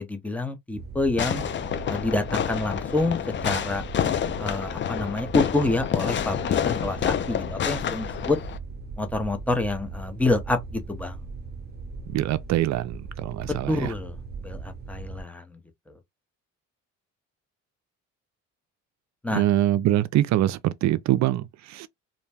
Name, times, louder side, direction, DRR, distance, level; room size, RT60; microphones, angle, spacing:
voice 1, 0.0-1.4 1.9-3.2 3.4-3.8 4.4-8.4 9.0-11.2 13.4-14.1 14.4-15.6 15.9-16.0 19.2-19.4, left 2 dB, 5° left, 0.7 m, -27 dB
sound 1, 0.7-15.2, right 4 dB, 35° right, 0.9 m, -39 dB
Fireworks, 1.2-8.6, left 9 dB, 40° left, 0.4 m, -28 dB
voice 2, 12.1-13.9 19.3-21.9, right 13 dB, 65° right, 0.4 m, -24 dB
2.6 x 2.2 x 3.3 m
cardioid pair, 90°, 30 cm